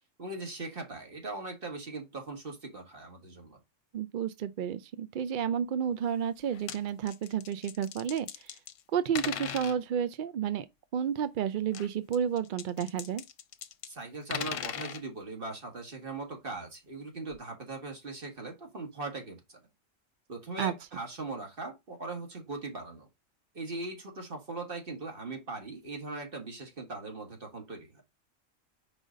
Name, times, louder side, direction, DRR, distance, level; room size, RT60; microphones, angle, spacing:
voice 1, 0.2-3.6 13.8-19.6 20.3-23.1 23.5-28.0, right 3 dB, 45° right, 1.9 m, -40 dB
voice 2, 3.9-8.6 8.9-10.7 10.9-13.2 20.6-20.7, right 8 dB, 60° right, 0.5 m, -31 dB
sound 1, 6.4-6.8 7.1-8.8 9.2-9.8 11.7-13.9 14.1-15.0 16.7-16.8 17.3-17.4, left 9 dB, 75° left, 1.0 m, -39 dB
4.9 x 3.9 x 5.1 m
omnidirectional pair, 1.3 m